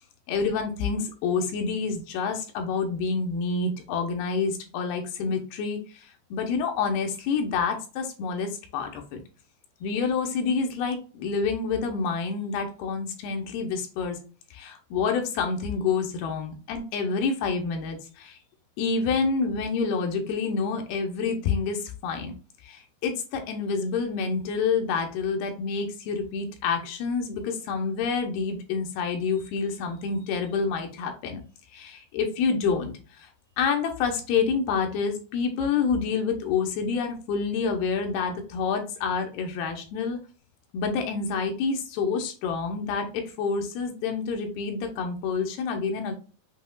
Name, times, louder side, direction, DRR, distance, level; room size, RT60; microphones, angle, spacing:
voice 1, 0.3-6.1 6.3-9.2 9.8-14.2 14.5-18.4 18.8-22.3 22.6-31.4 31.7-32.9 33.6-40.2 40.7-46.1, left 5 dB, 85° left, 4 dB, 2.7 m, -28 dB
7.7 x 2.8 x 2.3 m, 0.36 s
omnidirectional pair, 4.6 m